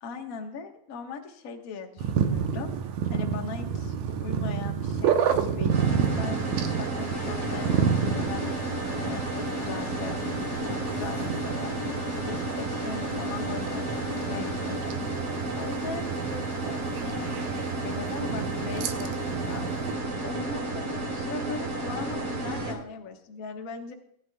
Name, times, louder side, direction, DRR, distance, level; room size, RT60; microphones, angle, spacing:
voice 1, 0.0-2.7 3.1-11.8 12.2-14.0 14.3-15.0 15.5-19.7 20.2-23.9, left 5 dB, 50° left, 3 dB, 1.0 m, -39 dB
sound 1, 2.0-19.9, right 7 dB, 70° right, 2.2 m, -30 dB
sound 2, 5.7-22.7, right 2 dB, 45° right, 3.1 m, -32 dB
sound 3, 7.1-14.8, left 8 dB, 75° left, 1.9 m, -41 dB
19.0 x 11.0 x 2.3 m, 0.74 s
omnidirectional pair, 3.6 m